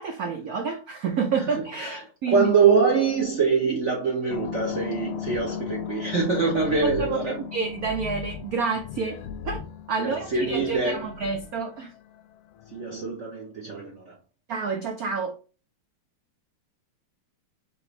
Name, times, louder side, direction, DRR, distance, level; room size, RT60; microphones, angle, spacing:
voice 1, 0.0-2.5 7.1-9.6 9.9-11.9 14.5-15.4, right 5 dB, 85° right, 0.8 m, -29 dB
voice 2, 1.5-2.0 2.3-7.4 10.0-11.1 12.7-14.2, right 5 dB, 55° right, 0.8 m, -24 dB
sound 1, 4.3-13.1, left 9 dB, 80° left, 1.4 m, -37 dB
4.9 x 3.2 x 3.1 m
omnidirectional pair, 2.4 m